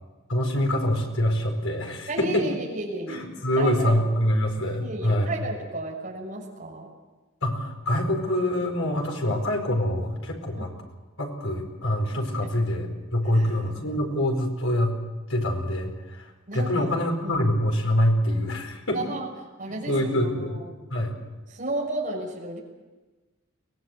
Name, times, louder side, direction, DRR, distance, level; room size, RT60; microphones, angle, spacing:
voice 1, 0.3-2.4 3.1-5.3 7.4-10.7 11.2-14.9 15.3-19.0 19.9-20.6 20.9-21.1, left 1 dB, 85° left, 2 dB, 4.6 m, -25 dB
voice 2, 2.1-3.2 3.6-4.0 4.8-6.9 9.3-9.4 10.5-10.7 12.4-12.5 13.3-14.0 16.5-16.9 17.2-17.5 18.9-19.3 19.6-20.7 21.5-22.6, right 1 dB, 40° right, -2 dB, 6.5 m, -33 dB
23.5 x 18.0 x 7.9 m, 1.2 s
head